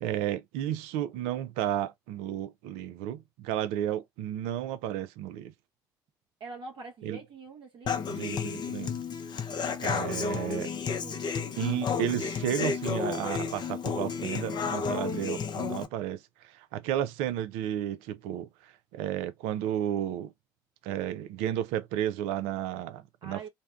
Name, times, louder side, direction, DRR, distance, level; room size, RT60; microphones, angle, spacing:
voice 1, 0.0-5.5 7.0-7.2 8.1-9.0 9.8-10.7 11.6-20.3 20.8-23.5, right 11 dB, 75° right, 0.4 m, -33 dB
voice 2, 6.4-8.1 10.2-11.4 23.2-23.5, right 4 dB, 55° right, 0.8 m, -45 dB
Human voice / Acoustic guitar, 7.9-15.8, left 6 dB, 45° left, 0.6 m, -32 dB
2.6 x 2.1 x 2.3 m
hypercardioid pair, 55°, 10 cm